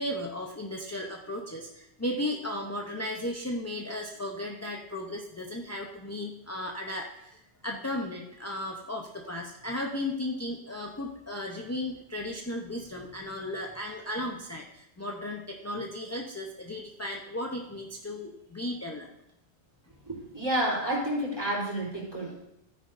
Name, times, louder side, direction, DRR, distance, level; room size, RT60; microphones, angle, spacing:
voice 1, 0.0-19.1, left 1 dB, 20° left, 0 dB, 0.5 m, -35 dB
voice 2, 20.1-22.3, right 1 dB, 15° right, -5 dB, 3.3 m, -30 dB
13.5 x 9.6 x 2.6 m, 0.84 s
omnidirectional pair, 1.4 m